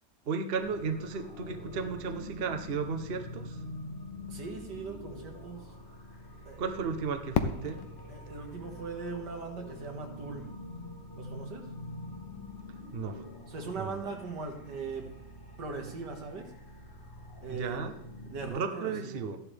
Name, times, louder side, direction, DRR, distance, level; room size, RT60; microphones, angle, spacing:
voice 1, 0.3-3.6 6.6-7.9 12.9-13.2 13.8-14.0 17.5-18.0 18.5-19.4, right 5 dB, 45° right, 7 dB, 0.8 m, -34 dB
sound 1, 0.6-18.5, left 1 dB, 30° left, 1.5 m, -46 dB
voice 2, 4.3-5.6 6.5-6.9 8.1-10.5 11.2-11.7 13.5-15.1 15.6-16.5 17.4-17.8 18.3-19.3, right 4 dB, 75° right, 3 dB, 2.2 m, -40 dB
Fireworks, 7.3-10.2, left 7 dB, 75° left, 1.4 m, -36 dB
13.5 x 10.5 x 3.4 m, 0.81 s
omnidirectional pair, 1.9 m